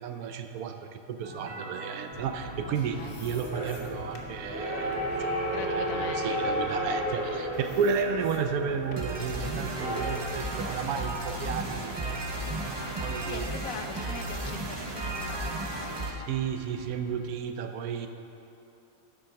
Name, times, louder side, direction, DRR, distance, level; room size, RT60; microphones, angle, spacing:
voice 1, 0.0-12.6 12.9-13.4 16.1-18.1, right 6 dB, 85° right, 7 dB, 1.1 m, -33 dB
sound 1, 1.2-16.1, right 2 dB, 30° right, 0.4 m, -37 dB
sound 2, 2.1-17.2, equal, 5° right, 1.9 m, -36 dB
voice 2, 2.7-3.2 5.5-7.1 13.1-16.3, left 5 dB, 70° left, 6 dB, 1.1 m, -42 dB
sound 3, 2.7-7.2 7.5-9.3 9.7-11.7 12.2-12.3 13.3-16.3, left 3 dB, 45° left, 1.1 m, -54 dB
8.5 x 7.3 x 5.8 m, 2.9 s
omnidirectional pair, 1.5 m